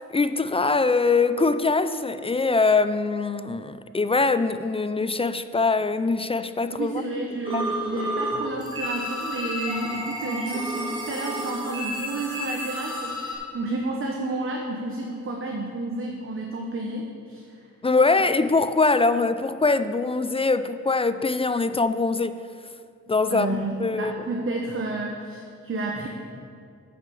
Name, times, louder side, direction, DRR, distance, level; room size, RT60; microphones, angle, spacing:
voice 1, 0.1-7.0 7.5-7.6 17.8-22.4 23.1-24.1, left 3 dB, 20° left, 0.3 m, -23 dB
voice 2, 6.8-17.5 18.2-18.3 23.3-26.1, right 2 dB, 45° right, 1.1 m, -31 dB
sound 1, 7.4-8.3 8.6-13.3, equal, 15° right, 2.5 m, -31 dB
9.0 x 6.1 x 6.9 m
cardioid pair, 95°, 29 cm